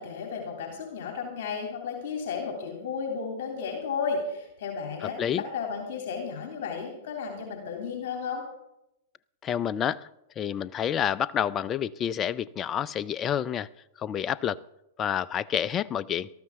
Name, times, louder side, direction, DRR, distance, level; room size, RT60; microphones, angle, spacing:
voice 1, 0.0-8.4, left 5 dB, 60° left, 1 dB, 3.1 m, -33 dB
voice 2, 5.0-5.4 9.4-10.1 10.4-13.7 14.0-14.6 15.0-16.3, left 9 dB, 30° left, 18 dB, 0.5 m, -29 dB
18.5 x 13.5 x 3.7 m, 0.88 s
hypercardioid pair, 105°, 0 cm